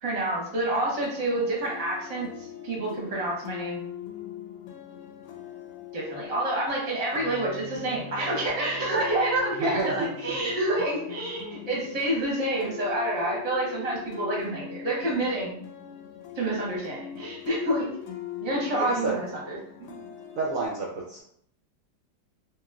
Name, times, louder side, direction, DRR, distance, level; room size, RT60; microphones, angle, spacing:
voice 1, 0.0-3.9 5.9-15.6 16.3-17.9 18.4-19.5 19.8-20.0, right 1 dB, 30° right, -4 dB, 0.7 m, -28 dB
sound 1, 0.8-20.7, left 10 dB, 85° left, 1.2 m, -41 dB
voice 2, 9.6-10.4 18.7-19.1 20.3-21.2, right 3 dB, 80° right, -3 dB, 0.7 m, -30 dB
3.0 x 2.9 x 2.3 m, 0.67 s
omnidirectional pair, 1.9 m